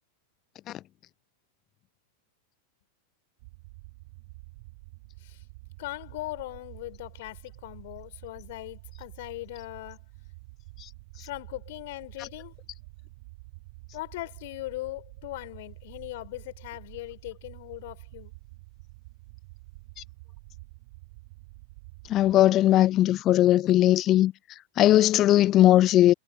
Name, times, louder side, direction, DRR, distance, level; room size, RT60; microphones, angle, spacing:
sound 1, 3.4-22.3, right 25 dB, 50° right, 3.9 m, -48 dB
voice 1, 5.8-10.0 11.2-12.5 13.9-18.3, left 18 dB, 50° left, 5.8 m, -39 dB
voice 2, 22.1-24.3 24.8-26.1, left 13 dB, 35° left, 0.4 m, -19 dB
figure-of-eight pair, 90°, 0 cm